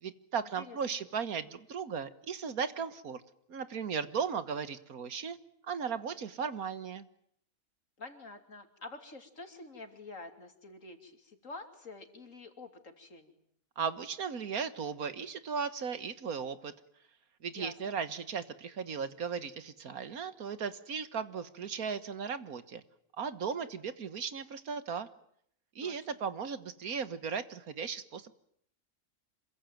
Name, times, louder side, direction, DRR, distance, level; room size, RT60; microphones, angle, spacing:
voice 1, 0.0-3.2 3.5-5.4 5.7-7.1 13.8-16.7 17.4-22.8 23.2-25.1 25.8-28.3, right 6 dB, 80° right, 13 dB, 1.9 m, -36 dB
voice 2, 8.0-13.3 17.5-17.9 25.8-26.0, left 3 dB, 60° left, 6 dB, 3.4 m, -48 dB
27.0 x 22.5 x 9.3 m, 0.68 s
omnidirectional pair, 1.5 m